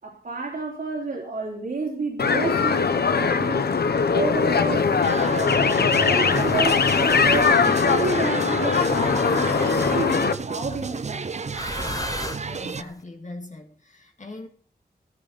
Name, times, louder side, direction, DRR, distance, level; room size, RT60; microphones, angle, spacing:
voice 1, 0.0-3.7 4.1-7.5 7.9-11.4, right 3 dB, 60° right, 3.4 m, -31 dB
sound 1, 2.2-10.3, left 5 dB, 70° left, 1.0 m, -21 dB
sound 2, 2.4-3.1 4.1-5.3 6.3-7.5 8.8-10.4 11.5-12.9, left 2 dB, 20° left, 0.9 m, -37 dB
sound 3, 5.0-12.8, right 5 dB, 40° right, 0.6 m, -32 dB
voice 2, 12.5-14.5, left 2 dB, 45° left, 2.4 m, -40 dB
15.0 x 14.0 x 4.1 m
wide cardioid pair, 120°, 17 cm